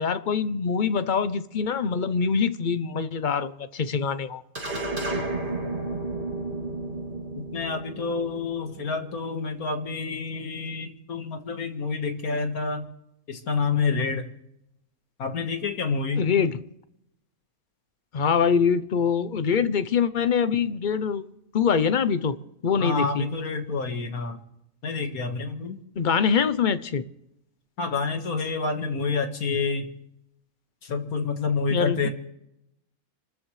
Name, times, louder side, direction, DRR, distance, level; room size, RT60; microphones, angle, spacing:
voice 1, 0.0-4.4 16.2-16.6 18.1-21.2 21.5-22.4 22.6-23.3 26.0-27.0 31.7-32.1, left 6 dB, 50° left, 0.6 m, -24 dB
sound 1, 4.5-9.2, right 2 dB, 35° right, 3.0 m, -32 dB
voice 2, 7.5-12.8 13.3-14.3 15.2-16.2 22.8-24.4 24.8-25.8 27.8-29.9 30.8-32.1, left 4 dB, 90° left, 2.1 m, -28 dB
28.0 x 13.5 x 3.2 m
omnidirectional pair, 1.5 m